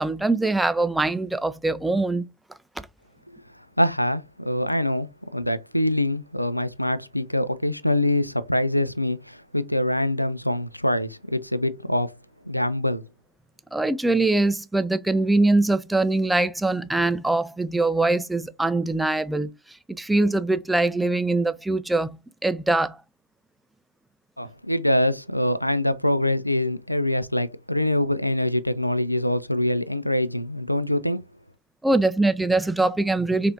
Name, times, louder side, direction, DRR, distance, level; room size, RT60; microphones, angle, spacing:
voice 1, 0.0-2.3 13.7-19.5 19.9-22.2 22.4-23.0 31.8-33.5, right 2 dB, 5° right, 0.3 m, -22 dB
voice 2, 3.8-12.1 12.5-13.0 24.4-31.2, left 1 dB, 90° left, 0.3 m, -24 dB
4.7 x 2.4 x 2.7 m
figure-of-eight pair, 90°, 0 cm